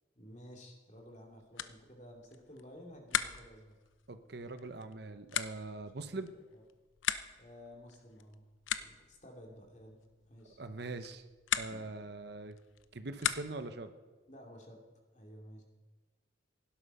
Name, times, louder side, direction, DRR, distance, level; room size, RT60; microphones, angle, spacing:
voice 1, 0.2-3.8 5.7-6.6 7.3-10.0 10.3-10.6 11.7-11.8 14.3-14.8 15.1-15.6, equal, 40° left, 2 dB, 2.7 m, -54 dB
sound 1, 1.0-13.8, left 9 dB, 90° left, 0.7 m, -41 dB
voice 2, 4.1-6.3 10.6-11.2 11.6-12.6 12.9-13.9, right 2 dB, 55° right, 10 dB, 0.9 m, -42 dB
17.0 x 12.0 x 5.5 m, 1.3 s
head